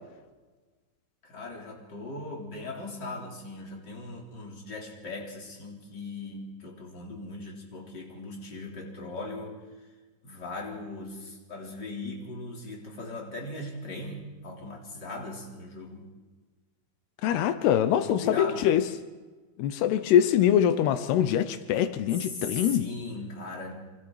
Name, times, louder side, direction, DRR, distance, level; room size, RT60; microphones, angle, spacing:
voice 1, 1.2-9.6 10.2-16.1 18.0-18.7 22.2-23.7, left 2 dB, 25° left, 4.0 m, -39 dB
voice 2, 17.2-18.8 19.6-22.9, left 10 dB, 85° left, 2.9 m, -23 dB
28.0 x 25.5 x 4.8 m
omnidirectional pair, 4.6 m